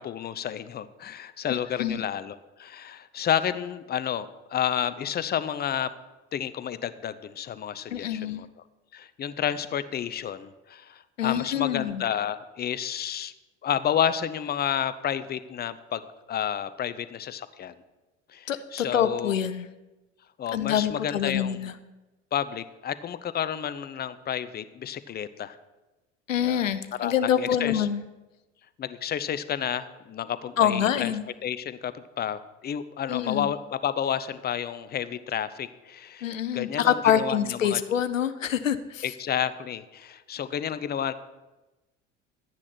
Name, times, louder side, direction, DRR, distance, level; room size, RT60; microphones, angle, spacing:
voice 1, 0.0-5.9 6.3-8.5 8.9-13.3 13.6-16.0 16.3-17.7 18.3-19.3 20.4-21.7 22.3-25.6 26.4-26.7 27.0-27.9 28.8-31.1 31.4-37.8 39.0-41.1, left 9 dB, 25° left, 14 dB, 0.7 m, -31 dB
voice 2, 1.5-2.1 7.9-8.4 11.2-12.0 18.5-19.7 20.5-21.7 26.3-28.0 30.6-31.2 33.1-33.5 36.2-39.0, left 9 dB, 85° left, 13 dB, 0.7 m, -26 dB
12.0 x 9.7 x 4.5 m, 1.1 s
figure-of-eight pair, 70°, 38 cm